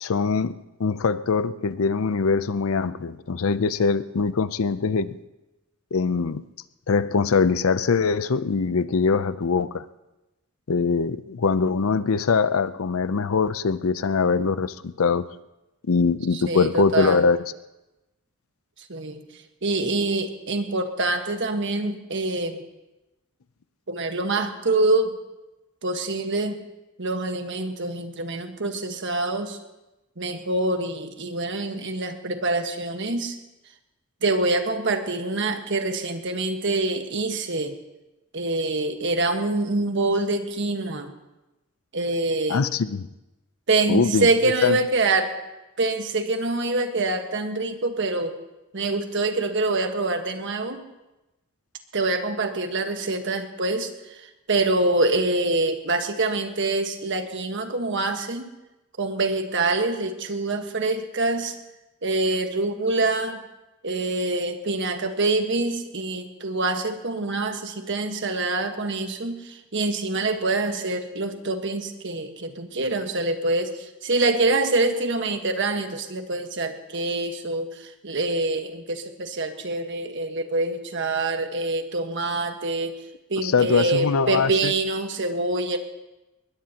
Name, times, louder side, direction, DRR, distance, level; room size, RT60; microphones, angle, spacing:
voice 1, 0.0-0.5 0.8-5.2 5.9-6.4 6.9-9.8 10.7-15.2 15.9-17.4 42.5-43.1 43.9-44.3 44.6-44.8 83.4-84.7, left 5 dB, 75° left, 15 dB, 0.5 m, -22 dB
voice 2, 16.3-17.3 18.9-22.6 23.9-25.2 25.8-26.6 27.0-29.6 30.2-33.4 34.2-37.8 38.3-41.1 41.9-42.7 43.7-45.3 45.8-48.4 48.7-50.8 51.9-58.5 59.0-61.6 62.0-63.4 63.8-82.9 83.3-85.8, right 2 dB, 60° right, 6 dB, 1.4 m, -25 dB
21.5 x 20.0 x 2.9 m, 1.0 s
head